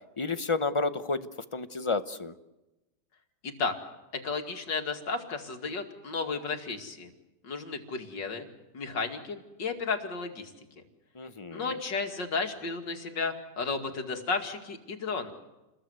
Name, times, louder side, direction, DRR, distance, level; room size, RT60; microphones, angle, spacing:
voice 1, 0.2-1.3 1.5-2.3 11.2-11.8, left 3 dB, 30° left, 11 dB, 0.6 m, -30 dB
voice 2, 3.4-3.7 4.2-7.1 7.4-8.4 8.7-10.5 11.5-15.3, left 4 dB, 85° left, 5 dB, 3.0 m, -33 dB
29.0 x 20.5 x 8.2 m, 1.0 s
omnidirectional pair, 1.9 m